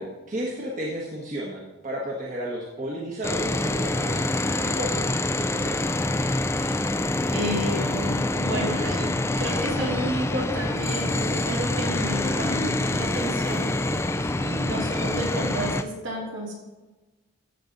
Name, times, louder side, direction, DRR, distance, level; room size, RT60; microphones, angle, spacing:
voice 1, 0.0-5.1 5.4-5.8 14.4-14.6, right 1 dB, 40° right, -3 dB, 1.4 m, -33 dB
sound 1, 3.2-15.8, left 2 dB, 15° left, 0.4 m, -26 dB
voice 2, 7.3-9.1 9.4-13.6 14.4-16.5, equal, 65° right, -3 dB, 3.5 m, -31 dB
14.0 x 7.1 x 4.0 m, 1.2 s
head